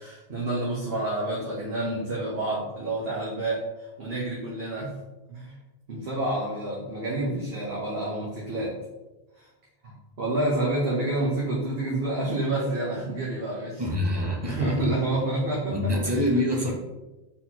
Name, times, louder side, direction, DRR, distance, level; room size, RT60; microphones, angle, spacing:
voice 1, 0.0-3.6 4.0-4.9 5.3-5.5 5.9-8.7 9.4-9.5 9.8-13.8 14.4-16.3, right 2 dB, 70° right, -6 dB, 1.2 m, -28 dB
voice 2, 13.8-14.8 15.7-16.7, left 1 dB, 30° right, 0 dB, 0.6 m, -25 dB
4.1 x 4.0 x 2.9 m, 1.1 s
omnidirectional pair, 1.0 m